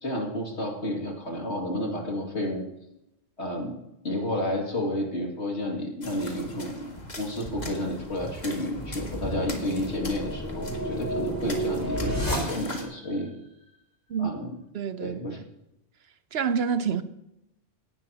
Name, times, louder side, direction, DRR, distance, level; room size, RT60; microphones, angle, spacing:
voice 1, 0.0-2.6 3.4-3.8 4.0-13.3 14.2-14.5 15.0-15.4, left 1 dB, 70° left, 2.7 m, -31 dB
sound 1, 6.0-12.8, left 1 dB, 40° left, 1.8 m, -40 dB
sound 2, 8.5-13.0, right 1 dB, 15° left, 3.4 m, -32 dB
voice 2, 14.7-15.4 16.3-17.0, right 6 dB, 65° right, 0.9 m, -27 dB
18.0 x 10.5 x 2.9 m
omnidirectional pair, 1.2 m